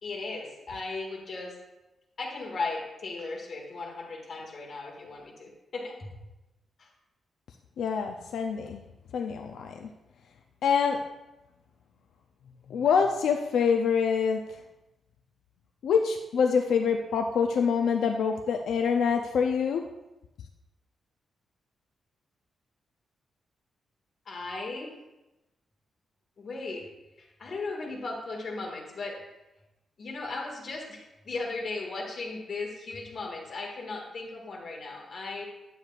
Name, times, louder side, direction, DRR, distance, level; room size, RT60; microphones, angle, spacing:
voice 1, 0.0-1.6 2.2-6.0 6.8-6.9 24.2-24.9 26.4-26.9 27.4-29.2 30.0-35.5, left 3 dB, 45° left, -1 dB, 1.7 m, -36 dB
voice 2, 7.8-8.8 9.1-9.9 10.6-11.0 12.7-14.4 15.8-19.8, left 6 dB, 85° left, 4 dB, 0.4 m, -25 dB
9.2 x 7.9 x 2.4 m, 0.98 s
wide cardioid pair, 160°, 0 cm